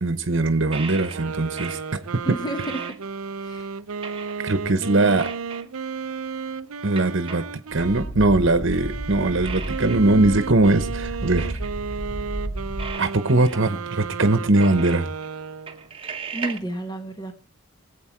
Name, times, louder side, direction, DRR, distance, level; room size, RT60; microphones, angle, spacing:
voice 1, 0.0-2.0 2.3-2.4 4.4-5.3 6.8-7.4 7.7-11.5 13.0-15.1, right 2 dB, 60° right, 1.1 m, -21 dB
sound 1, 0.7-2.1 2.3-3.5 4.0-4.6 5.2-5.7 6.1-6.2 6.8-7.9 8.9-9.0 9.4-10.1 10.4-10.5 11.4-11.9 12.8-14.1 14.5-15.3 15.7-16.6, right 5 dB, 25° right, 1.1 m, -37 dB
sound 2, 1.1-8.1 8.7-15.9, right 5 dB, 85° right, 0.6 m, -33 dB
voice 2, 2.3-3.0 3.4-3.7 16.3-17.3, right 1 dB, 20° left, 1.3 m, -31 dB
sound 3, 7.7-12.9, right 1 dB, 40° left, 6.6 m, -32 dB
22.0 x 8.3 x 4.6 m
head